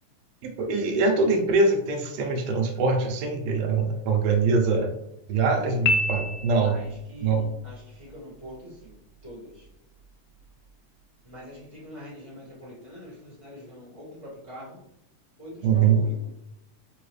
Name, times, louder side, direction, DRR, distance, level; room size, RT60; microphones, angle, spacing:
voice 1, 0.4-4.9 5.3-6.8 7.2-7.4 15.6-16.0, right 4 dB, 80° right, 2 dB, 1.5 m, -23 dB
Piano, 5.9-7.0, left 2 dB, 80° left, 1.7 m, -26 dB
voice 2, 6.6-7.7 8.1-8.5 9.2-9.4 11.3-14.2 14.5-14.8 15.4-16.1, equal, 40° left, -9 dB, 0.4 m, -43 dB
4.7 x 3.0 x 3.1 m, 0.80 s
omnidirectional pair, 3.6 m